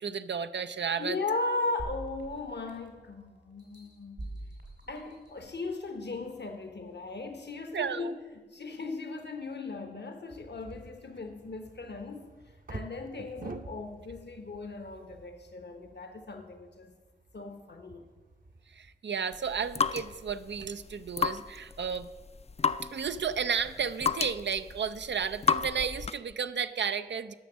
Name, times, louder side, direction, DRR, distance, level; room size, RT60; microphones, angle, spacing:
voice 1, 0.0-1.2 7.7-8.1 18.7-22.1 22.8-27.3, right 6 dB, 90° right, 11 dB, 0.4 m, -33 dB
voice 2, 1.0-4.3 4.9-12.3 12.7-16.9 17.3-18.0, left 3 dB, 75° left, 6 dB, 1.0 m, -37 dB
sound 1, 1.8-3.1 3.6-5.7 6.3-6.4, right 1 dB, 75° right, 2.4 m, -44 dB
sound 2, 10.3-18.9, right 2 dB, 50° right, 0.8 m, -48 dB
sound 3, 19.3-26.3, left 5 dB, 35° left, 0.3 m, -33 dB
10.5 x 6.1 x 7.3 m, 1.4 s
wide cardioid pair, 45°, 18 cm